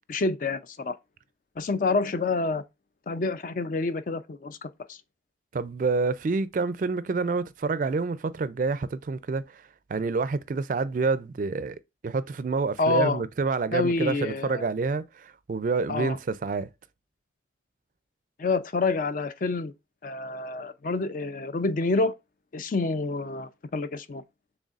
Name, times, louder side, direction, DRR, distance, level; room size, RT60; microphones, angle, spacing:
voice 1, 0.1-1.0 1.6-2.6 3.1-5.0 12.8-13.2 13.7-14.7 15.9-16.2 18.4-19.7 20.0-22.1 22.5-24.2, left 3 dB, 45° left, 0.4 m, -28 dB
voice 2, 5.5-9.6 9.9-11.8 12.0-16.7, right 4 dB, 45° right, 0.3 m, -28 dB
6.4 x 3.5 x 2.4 m
head